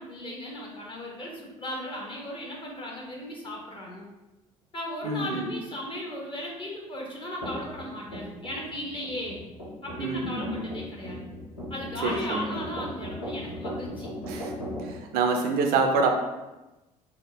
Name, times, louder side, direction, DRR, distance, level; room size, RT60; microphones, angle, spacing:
voice 1, 0.0-4.1 4.7-9.4 9.8-11.2 11.7-14.1, left 1 dB, 30° left, -2 dB, 1.1 m, -36 dB
voice 2, 5.0-5.5 10.0-10.7 12.0-12.5 14.2-14.5 14.8-16.1, right 4 dB, 60° right, 4 dB, 0.6 m, -27 dB
sound 1, 7.4-14.9, equal, 85° left, 0.9 m, -38 dB
3.5 x 2.1 x 2.9 m, 1.0 s
hypercardioid pair, 60°, 17 cm